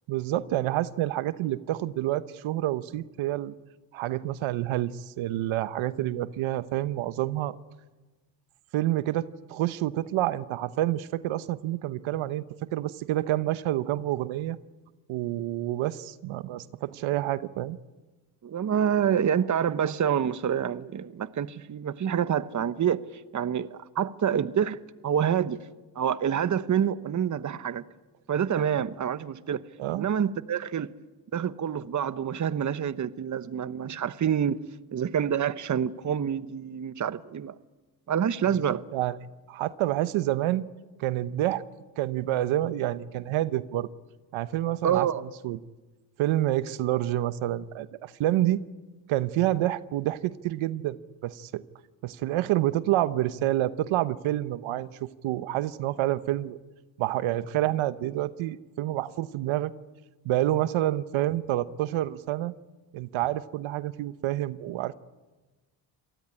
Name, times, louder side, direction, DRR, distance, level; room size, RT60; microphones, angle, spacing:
voice 1, 0.1-3.5 3.9-7.6 8.7-14.6 15.1-17.8 29.8-30.1 38.7-39.2 39.5-40.7 41.0-41.6 42.0-43.9 44.3-45.1 45.4-45.6 46.2-48.6 49.1-51.6 52.0-56.6 57.0-59.7 60.2-62.5 62.9-64.9, right 14 dB, 80° right, 1.0 m, -28 dB
voice 2, 18.4-23.0 23.3-25.6 25.9-27.8 28.3-29.6 29.9-30.9 31.3-34.6 34.9-37.5 38.1-38.8 44.8-45.2, right 8 dB, 40° right, 1.0 m, -27 dB
27.5 x 19.0 x 9.8 m
cardioid pair, 85°, 47 cm